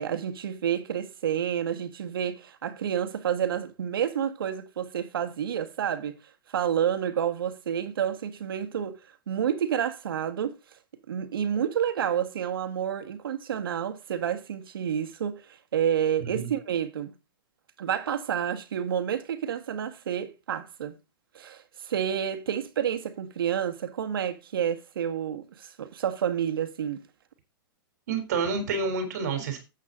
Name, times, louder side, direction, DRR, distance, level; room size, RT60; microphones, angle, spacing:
voice 1, 0.0-6.2 6.5-9.0 9.3-10.6 11.1-15.4 15.7-17.1 17.8-20.9 21.3-27.1, right 9 dB, 75° right, 1.9 m, -29 dB
voice 2, 16.2-16.5 28.1-29.6, right 4 dB, 50° right, 3.8 m, -29 dB
13.0 x 8.5 x 4.0 m
hypercardioid pair, 175°, 12 cm